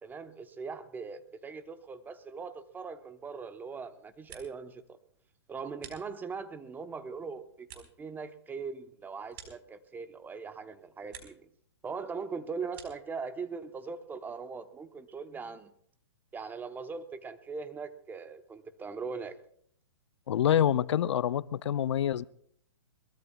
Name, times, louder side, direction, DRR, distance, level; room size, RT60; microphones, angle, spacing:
voice 1, 0.0-4.8 5.5-11.5 11.8-15.7 16.3-19.4, right 5 dB, 10° right, 0.9 m, -40 dB
sound 1, 4.0-4.8 5.1-6.5 7.0-10.2 10.6-11.5 11.8-13.2, right 8 dB, 50° right, 4.6 m, -54 dB
voice 2, 20.3-22.2, left 10 dB, 65° left, 0.5 m, -26 dB
23.0 x 20.5 x 2.3 m
hypercardioid pair, 130°, 16 cm